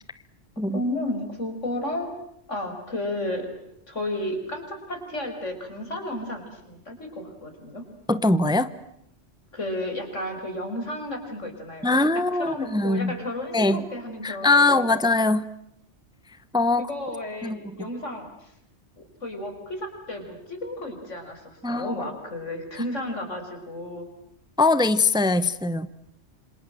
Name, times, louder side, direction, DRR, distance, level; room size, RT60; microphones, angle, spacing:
voice 1, 0.7-2.2 2.5-3.5 3.9-7.8 9.5-12.0 12.4-14.9 16.8-18.5 19.0-24.1, left 1 dB, 85° left, 5 dB, 5.8 m, -33 dB
voice 2, 8.1-8.7 11.8-13.1 13.5-13.8 14.2-15.5 16.5-16.9 17.4-17.6 21.6-22.0 24.6-25.9, left 2 dB, 5° right, 14 dB, 0.8 m, -22 dB
27.5 x 27.0 x 7.7 m, 0.76 s
omnidirectional pair, 1.2 m